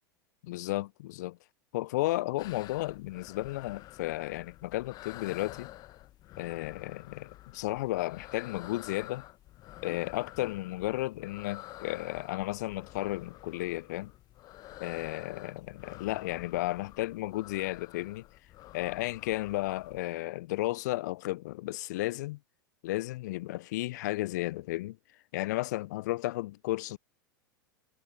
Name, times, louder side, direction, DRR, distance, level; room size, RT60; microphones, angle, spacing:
voice 1, 0.4-1.4 1.7-5.7 6.4-9.2 9.8-14.1 14.8-18.3 18.7-22.4 22.8-25.0 25.3-27.0, left 18 dB, 55° left, 0.6 m, -33 dB
sound 1, 2.4-20.1, left 15 dB, 35° left, 1.1 m, -50 dB
figure-of-eight pair, 90°, 11 cm